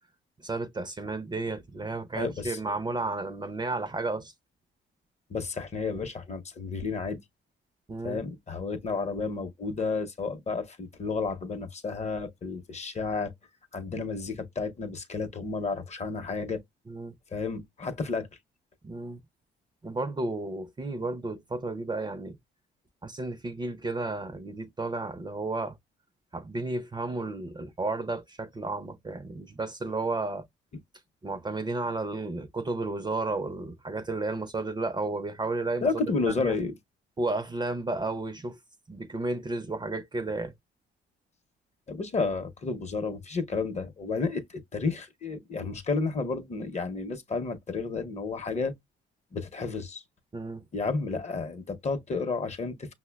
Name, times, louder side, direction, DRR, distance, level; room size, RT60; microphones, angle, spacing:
voice 1, 0.4-4.3 7.9-8.3 16.9-17.1 18.8-19.2 19.8-22.4 23.0-25.8 26.3-30.5 31.2-35.9 36.3-36.6 37.2-38.6 38.9-40.5 50.3-50.6, right 3 dB, 20° right, 0.5 m, -32 dB
voice 2, 2.1-2.6 5.3-7.2 8.0-13.3 13.7-16.6 17.3-18.3 35.8-36.7 41.9-48.7 49.3-50.0 50.7-52.9, left 4 dB, 35° left, 0.7 m, -31 dB
5.4 x 2.1 x 2.2 m
cardioid pair, 90°, 20 cm